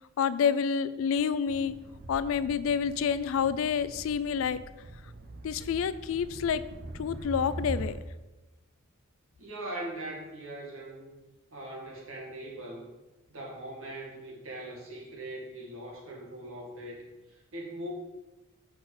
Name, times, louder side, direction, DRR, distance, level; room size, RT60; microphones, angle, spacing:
voice 1, 0.2-1.8 2.1-4.6 5.4-6.6 7.0-8.0, left 7 dB, 70° left, 15 dB, 0.3 m, -28 dB
sound 1, 1.5-8.0, right 2 dB, 45° right, 0.6 m, -42 dB
voice 2, 9.4-11.1 11.5-12.9 13.3-17.0 17.3-17.9, right 1 dB, 70° right, -2 dB, 1.9 m, -41 dB
5.6 x 4.2 x 5.8 m, 1.1 s
head